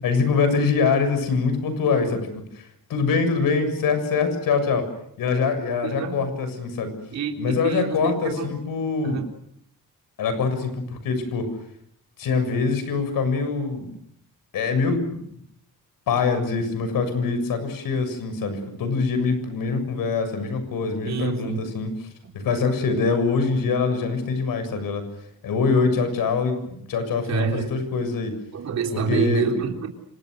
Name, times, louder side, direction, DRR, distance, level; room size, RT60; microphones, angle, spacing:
voice 1, 0.0-2.6 2.9-4.8 5.2-6.9 7.4-9.2 10.2-11.5 12.2-13.9 14.5-15.2 16.1-22.1 22.3-25.0 25.4-28.3 28.9-29.4, left 4 dB, 70° left, 9 dB, 7.1 m, -24 dB
voice 2, 5.8-6.2 7.1-8.5 9.0-9.3 21.0-21.7 27.3-27.7 28.5-29.9, right 6 dB, 50° right, 2 dB, 4.0 m, -27 dB
29.0 x 26.5 x 6.6 m, 0.72 s
cardioid pair, 180°, 35 cm